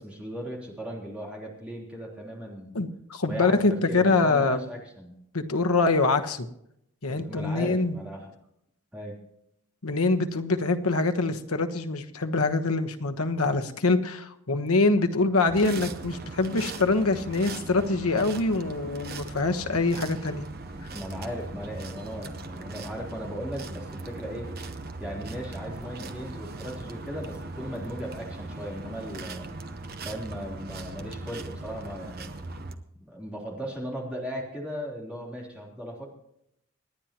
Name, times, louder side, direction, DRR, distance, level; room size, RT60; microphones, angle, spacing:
voice 1, 0.0-2.8 3.3-5.1 7.1-8.3 8.9-9.2 20.7-24.5 25.0-29.5 30.0-32.3 33.0-36.1, equal, 5° right, -3 dB, 3.4 m, -37 dB
voice 2, 2.7-4.6 5.3-6.4 7.0-7.9 9.8-20.5, left 3 dB, 90° left, 7 dB, 1.2 m, -24 dB
sound 1, 15.5-32.8, right 2 dB, 45° right, 1.0 m, -39 dB
28.0 x 10.0 x 3.0 m, 0.76 s
head